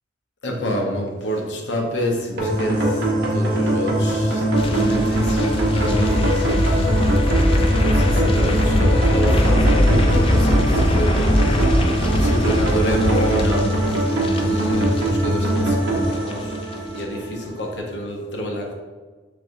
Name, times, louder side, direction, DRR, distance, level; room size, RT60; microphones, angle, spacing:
voice 1, 0.4-6.9 7.3-11.8 12.2-18.7, equal, 70° left, 0 dB, 0.8 m, -28 dB
sound 1, 2.4-17.4, right 1 dB, 80° right, 0.9 m, -21 dB
sound 2, 4.5-15.7 16.0-16.3 16.6-16.7, left 1 dB, 30° left, 0.3 m, -21 dB
4.7 x 3.2 x 2.6 m, 1.3 s
head